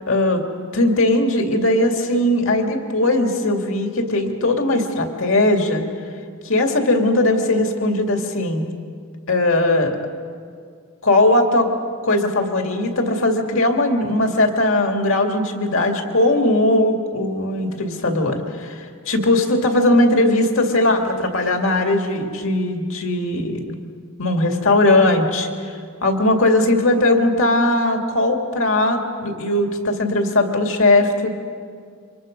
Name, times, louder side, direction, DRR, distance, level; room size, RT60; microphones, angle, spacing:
voice 1, 0.1-0.4 0.7-5.8 6.4-8.7 9.3-9.9 11.0-11.7 12.0-23.8 24.2-25.5 26.0-31.3, left 2 dB, 65° left, 3 dB, 2.4 m, -19 dB
28.0 x 25.0 x 5.3 m, 2.1 s
head